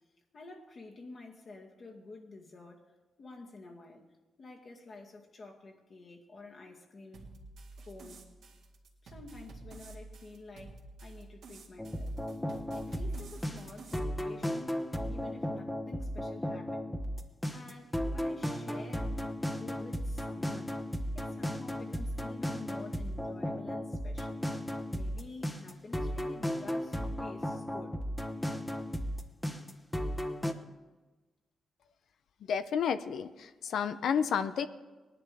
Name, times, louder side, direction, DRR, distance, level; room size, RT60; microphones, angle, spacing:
voice 1, 0.3-2.9 3.2-4.0 4.4-7.4 7.9-8.3 9.0-12.2 12.7-14.8 15.1-17.0 17.5-19.2 19.5-20.8 21.1-24.4 24.9-28.0, left 3 dB, 50° left, 2.2 m, -50 dB
sound 1, 7.1-14.0, right 3 dB, 75° right, 2.0 m, -50 dB
sound 2, 11.8-30.5, equal, 15° left, 1.2 m, -35 dB
voice 2, 32.5-34.7, left 7 dB, 80° left, 0.6 m, -31 dB
19.0 x 11.0 x 3.5 m
cardioid pair, 65°, 0 cm